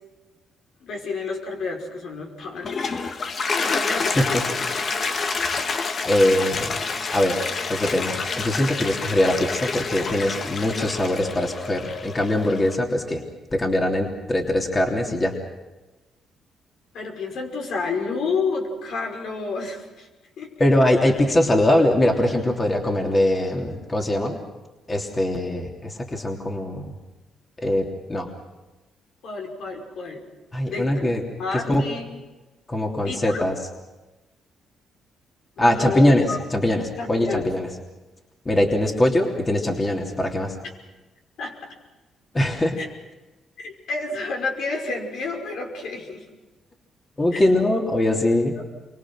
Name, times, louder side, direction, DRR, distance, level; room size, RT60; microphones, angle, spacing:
voice 1, 0.8-3.1 3.4-4.7 16.9-20.1 20.4-20.5 29.2-30.2 30.7-31.1 31.4-32.2 33.0-33.4 35.6-36.4 37.0-37.5 41.4-41.6 42.8-42.9 43.6-46.2 47.3-47.5, left 4 dB, 70° left, 1 dB, 5.6 m, -30 dB
Toilet flush, 2.4-12.8, left 4 dB, 45° left, 1.5 m, -28 dB
voice 2, 6.0-6.8 7.1-7.4 7.7-13.2 13.5-15.4 20.6-24.4 24.9-27.0 27.6-28.3 30.5-31.2 31.5-31.8 32.7-33.6 35.6-37.7 38.4-40.6 42.3-42.8 47.2-48.5, left 1 dB, 25° left, 1 dB, 3.2 m, -22 dB
29.0 x 24.0 x 6.3 m, 1.1 s
cardioid pair, 90°, 0 cm